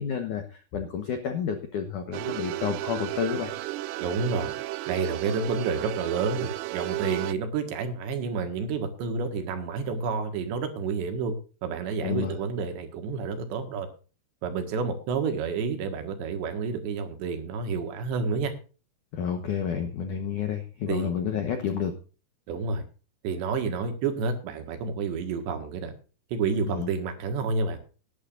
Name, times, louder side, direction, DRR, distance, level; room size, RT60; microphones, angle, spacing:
voice 1, 0.0-3.5 12.0-12.4 19.1-21.9 26.7-26.9, left 7 dB, 70° left, 6 dB, 1.9 m, -30 dB
sound 1, 2.1-7.3, right 18 dB, 85° right, 3.2 m, -33 dB
voice 2, 4.0-4.5 4.9-11.3 11.6-13.9 14.4-18.5 20.9-21.1 22.5-22.8 23.2-25.9 26.3-27.8, right 5 dB, 70° right, 6 dB, 3.8 m, -29 dB
19.0 x 11.0 x 2.6 m, 0.36 s
omnidirectional pair, 5.5 m